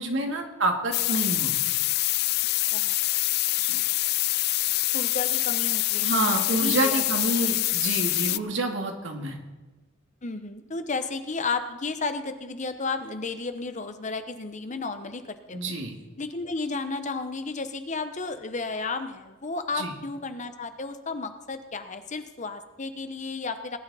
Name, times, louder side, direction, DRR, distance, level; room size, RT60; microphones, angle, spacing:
voice 1, 0.0-1.7 3.6-3.8 6.0-9.4 15.5-15.9 19.8-19.9, right 2 dB, 70° right, 2 dB, 2.2 m, -28 dB
sound 1, 0.9-8.4, left 18 dB, 55° left, 0.3 m, -25 dB
voice 2, 4.9-7.0 7.3-7.5 10.2-15.2 15.5-15.7 16.2-23.8, left 3 dB, 40° left, 9 dB, 0.9 m, -33 dB
19.0 x 11.0 x 4.2 m, 1.2 s
head